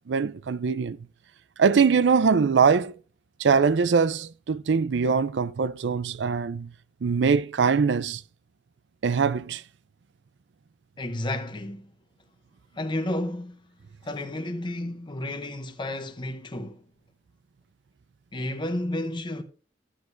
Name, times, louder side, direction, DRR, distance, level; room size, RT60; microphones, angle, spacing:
voice 1, 0.1-1.0 1.6-2.9 3.4-6.7 7.0-8.2 9.0-9.6, right 5 dB, 85° right, 0.5 m, -22 dB
voice 2, 11.0-11.9 12.7-13.6 14.0-16.8 18.3-19.4, left 1 dB, 25° left, 0.8 m, -31 dB
12.5 x 7.9 x 2.6 m
head